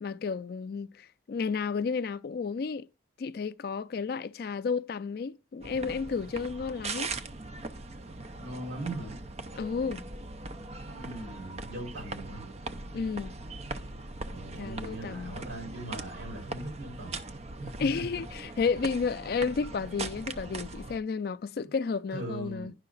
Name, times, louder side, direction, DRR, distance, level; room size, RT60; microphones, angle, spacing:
voice 1, 0.0-2.9 3.2-7.1 9.6-10.1 12.9-13.3 14.6-15.4 17.8-22.7, left 5 dB, 55° left, 0.3 m, -32 dB
sound 1, 5.6-21.0, right 3 dB, 35° right, 0.5 m, -40 dB
voice 2, 8.4-9.2 10.8-12.4 14.3-17.2 17.6-18.2 21.6-21.7 22.1-22.7, right 1 dB, 80° right, 5.0 m, -40 dB
10.5 x 5.6 x 3.9 m
head